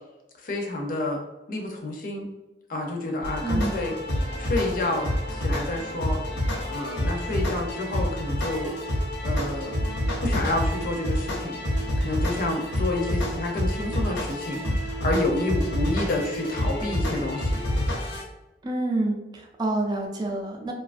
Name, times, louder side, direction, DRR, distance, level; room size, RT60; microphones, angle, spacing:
voice 1, 0.4-1.2 1.5-2.3 2.7-3.9 4.4-6.2 6.7-8.7 9.2-9.9 10.2-11.6 12.0-17.6, left 2 dB, 50° left, 1 dB, 0.5 m, -29 dB
sound 1, 3.2-18.2, equal, 85° left, 0.9 m, -28 dB
voice 2, 3.4-3.8 18.6-20.7, right 2 dB, 25° right, 1 dB, 0.4 m, -28 dB
2.6 x 2.3 x 2.4 m, 1.0 s
head